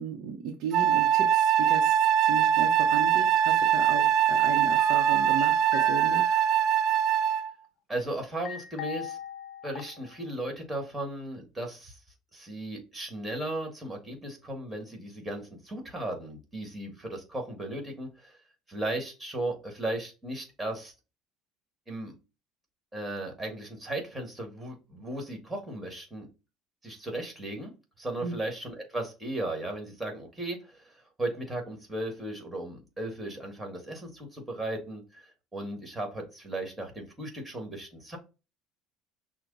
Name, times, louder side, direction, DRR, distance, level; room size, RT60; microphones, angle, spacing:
voice 1, 0.0-6.3 28.2-28.4, right 7 dB, 65° right, 1 dB, 0.7 m, -35 dB
Wind instrument woodwind instrument, 0.7-7.5, right 9 dB, 50° right, 0.3 m, -23 dB
sound 1, 4.8-6.6 8.4-10.2 10.5-10.6, left 8 dB, 55° left, 0.6 m, -41 dB
voice 2, 7.9-9.2 9.6-12.0 12.3-18.4 18.7-20.9 21.9-22.1 22.9-26.3 26.8-38.2, right 1 dB, 10° right, 3 dB, 1.6 m, -36 dB
6.0 x 2.1 x 3.8 m, 0.30 s
cardioid pair, 120°, 0 cm